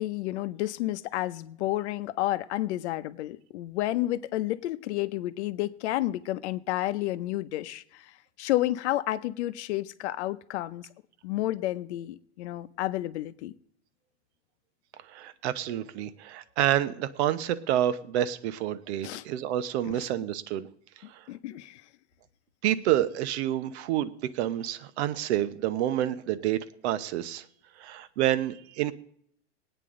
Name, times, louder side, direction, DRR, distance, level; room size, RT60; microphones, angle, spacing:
voice 1, 0.0-8.1 8.4-10.9 11.2-13.5 19.0-19.2 19.8-19.9 21.3-21.8, left 15 dB, 70° left, 13 dB, 0.8 m, -31 dB
voice 2, 15.1-20.7 21.1-21.2 22.6-27.4 27.8-28.9, right 12 dB, 65° right, 13 dB, 1.0 m, -28 dB
19.0 x 9.1 x 3.8 m, 0.67 s
supercardioid pair, 125°, 35 cm